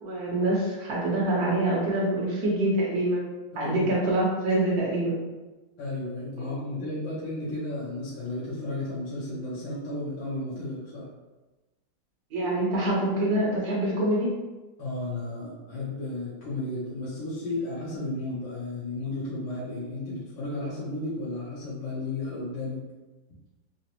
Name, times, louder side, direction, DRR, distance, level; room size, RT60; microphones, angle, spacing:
voice 1, 0.0-3.2 3.6-5.2 6.4-6.5 12.3-14.3, right 1 dB, 55° right, -4 dB, 1.3 m, -25 dB
voice 2, 3.5-3.9 5.8-11.1 14.8-22.8, left 2 dB, 75° left, -8 dB, 1.5 m, -33 dB
4.0 x 2.0 x 2.8 m, 1.1 s
omnidirectional pair, 2.2 m